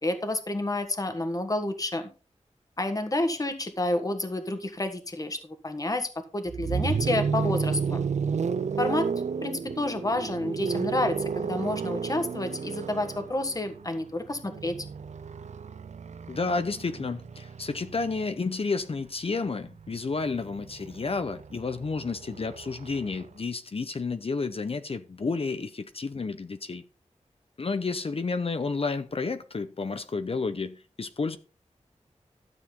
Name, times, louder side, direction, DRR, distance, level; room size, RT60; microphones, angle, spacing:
voice 1, 0.0-2.1 2.8-8.1 8.8-14.8, left 2 dB, 30° left, 1.4 m, -29 dB
sound 1, 6.5-18.4 19.7-23.3, right 6 dB, 75° right, 0.5 m, -32 dB
voice 2, 16.3-26.8 27.6-31.4, left 4 dB, 50° left, 0.7 m, -31 dB
13.0 x 7.2 x 3.8 m
wide cardioid pair, 85°, 12 cm